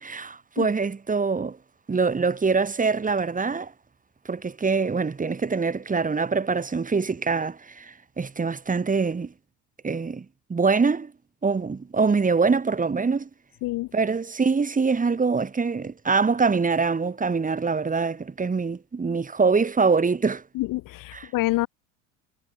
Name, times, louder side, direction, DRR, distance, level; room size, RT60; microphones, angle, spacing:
voice 1, 0.0-1.6 1.9-3.7 4.2-9.3 9.8-11.1 11.4-13.3 13.9-20.4 21.1-21.3, right 4 dB, 20° right, 5.2 m, -24 dB
voice 2, 20.5-21.7, left 18 dB, 55° left, 3.1 m, -27 dB
hypercardioid pair, 90°, 38 cm